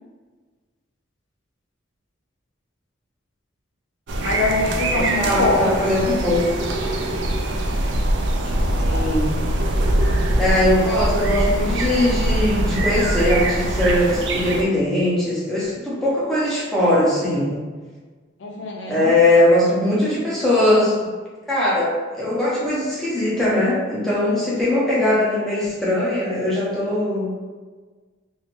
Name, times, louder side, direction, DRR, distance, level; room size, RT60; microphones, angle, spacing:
sound 1, 4.1-14.6, right 1 dB, 65° right, 0.4 m, -22 dB
voice 1, 4.2-6.1 8.6-9.1 18.4-19.1, left 2 dB, 65° left, 0 dB, 0.4 m, -24 dB
voice 2, 4.9-6.4 8.7-9.3 10.4-17.6 18.9-21.0 21.5-21.9 22.2-27.3, left 1 dB, ahead, -9 dB, 0.9 m, -20 dB
3.1 x 2.7 x 3.1 m, 1.4 s
head